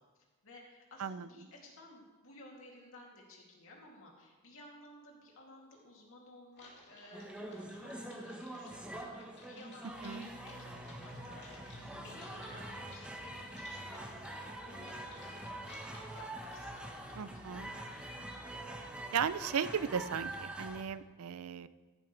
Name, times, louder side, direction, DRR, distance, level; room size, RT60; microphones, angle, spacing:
voice 1, 0.4-18.0, left 1 dB, 65° left, -2 dB, 2.7 m, -56 dB
Typing, 6.5-17.0, left 2 dB, 50° left, 2.9 m, -58 dB
sound 1, 7.1-20.8, right 1 dB, 5° right, 1.1 m, -45 dB
voice 2, 17.2-17.7 19.1-21.7, right 7 dB, 70° right, 15 dB, 0.5 m, -36 dB
14.0 x 11.5 x 3.3 m, 1.3 s
head